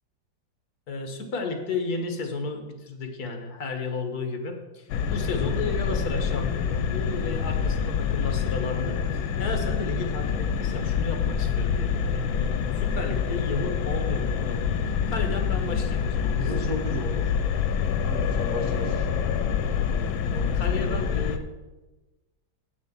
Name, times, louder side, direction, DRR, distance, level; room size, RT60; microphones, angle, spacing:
voice 1, 0.9-12.3 12.8-14.6 15.1-16.8 20.3-21.5, left 3 dB, 55° left, 4 dB, 1.9 m, -33 dB
sound 1, 4.9-21.4, left 6 dB, 85° left, 1.5 m, -26 dB
voice 2, 16.4-17.2 18.0-19.2 20.3-20.6 20.9-21.2, equal, 50° right, 1 dB, 2.2 m, -34 dB
8.8 x 7.4 x 7.4 m, 1.2 s
omnidirectional pair, 2.1 m